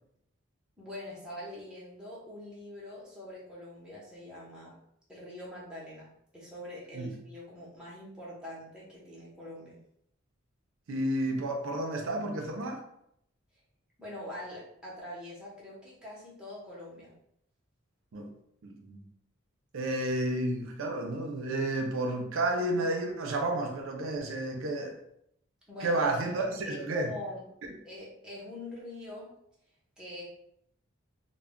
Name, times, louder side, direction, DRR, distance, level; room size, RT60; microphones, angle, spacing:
voice 1, 0.8-4.7 5.1-9.8 14.0-17.1 25.7-26.0 26.4-27.4 27.8-29.3 30.0-30.3, left 1 dB, 5° right, -7 dB, 0.7 m, -44 dB
voice 2, 10.9-12.8 18.1-18.3 18.6-19.0 19.7-25.0 25.8-27.1, right 1 dB, 75° right, 3 dB, 0.4 m, -31 dB
2.2 x 2.1 x 3.5 m, 0.74 s
head